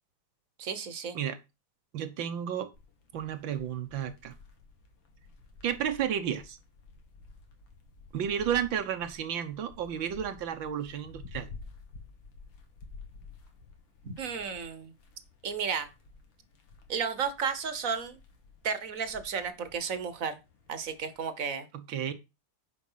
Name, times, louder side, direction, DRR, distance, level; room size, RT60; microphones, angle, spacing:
voice 1, 0.6-1.2 14.0-14.9 15.4-15.9 16.9-18.2 18.6-20.4 20.7-21.7, right 6 dB, 50° right, 1.4 m, -33 dB
voice 2, 1.9-2.7 3.1-4.3 5.6-6.6 8.1-11.5 21.7-22.1, right 9 dB, 80° right, 1.8 m, -32 dB
sound 1, 2.7-21.3, left 4 dB, 80° left, 2.6 m, -52 dB
9.9 x 5.4 x 5.6 m
omnidirectional pair, 2.1 m